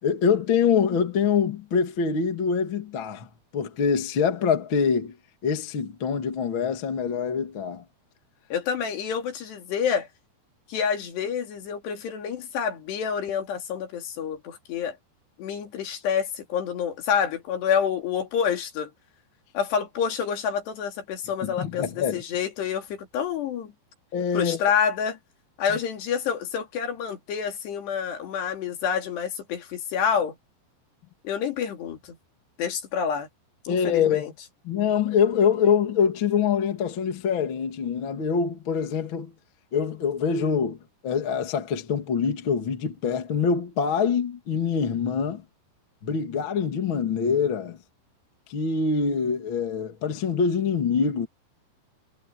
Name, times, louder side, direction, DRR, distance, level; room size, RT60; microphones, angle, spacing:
voice 1, 0.0-3.3 3.5-5.1 5.4-7.8 21.4-22.2 24.1-24.6 25.7-25.8 33.7-34.3 34.6-39.3 39.7-40.8 41.0-45.4 46.0-47.8 48.5-51.3, left 6 dB, 40° left, 2.1 m, -24 dB
voice 2, 8.5-10.1 10.7-15.0 15.4-18.9 19.5-23.7 24.3-25.2 25.6-30.4 31.2-32.2 32.6-33.3 33.6-34.3, left 7 dB, 75° left, 4.8 m, -28 dB
omnidirectional pair, 4.9 m